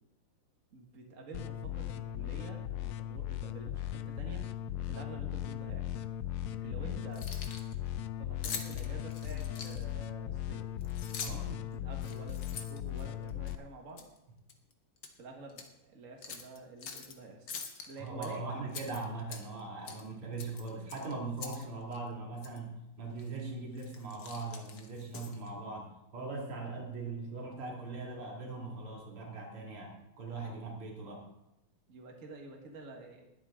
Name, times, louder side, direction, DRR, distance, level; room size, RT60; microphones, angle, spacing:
voice 1, 0.7-4.5 4.8-6.0 6.6-7.3 8.2-10.7 11.3-14.1 15.2-17.5 17.9-18.7 31.9-33.2, right 2 dB, 40° right, 2 dB, 1.9 m, -49 dB
sound 1, 1.3-13.6, left 11 dB, 80° left, 1.5 m, -38 dB
Keys jangling, 7.0-7.7 8.4-10.0 10.8-11.5 12.0-13.5 14.0-14.2 14.5-15.1 15.5-15.7 16.2-17.1 17.5-18.3 18.7-19.6 19.9-20.1 20.4-21.6 21.9-22.0 22.4-22.6 23.2-23.4 23.8-25.5, left 6 dB, 60° left, 1.8 m, -44 dB
voice 2, 18.0-22.7 23.0-31.2, right 3 dB, 90° right, -1 dB, 3.5 m, -40 dB
20.0 x 8.4 x 3.7 m, 0.90 s
omnidirectional pair, 2.4 m